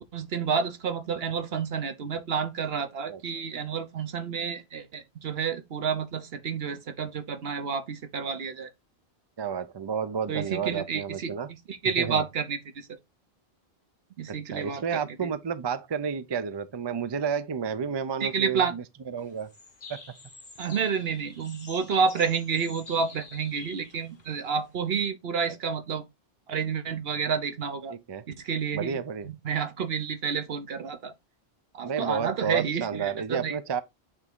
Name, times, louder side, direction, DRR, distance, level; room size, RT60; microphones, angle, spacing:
voice 1, 0.1-8.7 10.3-11.3 11.7-13.0 14.2-15.3 18.2-18.7 20.6-26.0 26.5-28.0 28.4-31.1 31.7-33.6, right 6 dB, 70° right, 1.1 m, -30 dB
voice 2, 3.1-3.4 9.4-11.5 12.0-12.2 14.3-19.5 19.9-20.0 27.9-28.2 28.7-29.3 31.8-33.8, right 6 dB, 35° right, 0.4 m, -31 dB
sound 1, 19.2-24.9, left 3 dB, 40° left, 1.2 m, -47 dB
8.2 x 3.5 x 3.6 m
omnidirectional pair, 1.1 m